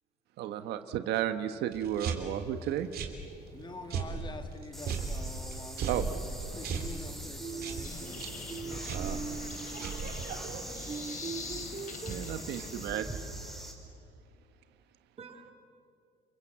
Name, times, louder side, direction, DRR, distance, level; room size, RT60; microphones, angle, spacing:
voice 1, 0.4-2.9 5.9-6.0 8.9-9.2 12.1-13.2, right 11 dB, 80° right, 1.3 m, -33 dB
sound 1, 1.7-10.6, right 5 dB, 65° right, 3.4 m, -38 dB
voice 2, 3.5-9.4 10.5-11.2 12.1-12.4, left 3 dB, 25° left, 2.0 m, -47 dB
sound 2, 4.7-13.7, right 1 dB, ahead, 5.1 m, -43 dB
voice 3, 7.4-10.0 10.9-12.7 15.2-15.5, right 5 dB, 35° right, 2.8 m, -42 dB
sound 3, 7.8-12.9, left 5 dB, 50° left, 3.0 m, -45 dB
30.0 x 23.0 x 8.1 m
cardioid pair, 110°, 17 cm